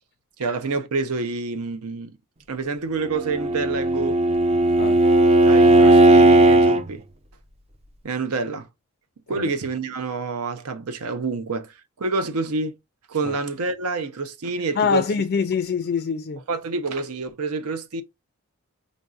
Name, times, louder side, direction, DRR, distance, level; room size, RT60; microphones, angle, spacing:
voice 1, 0.4-2.2 2.5-4.2 5.4-7.0 8.0-8.7 9.3-12.8 13.1-15.0 16.5-18.0, right 4 dB, 85° right, 0.6 m, -27 dB
Bowed string instrument, 3.1-6.8, right 1 dB, 25° right, 0.4 m, -16 dB
voice 2, 14.8-16.4, left 6 dB, 45° left, 0.3 m, -24 dB
5.0 x 2.6 x 2.3 m
head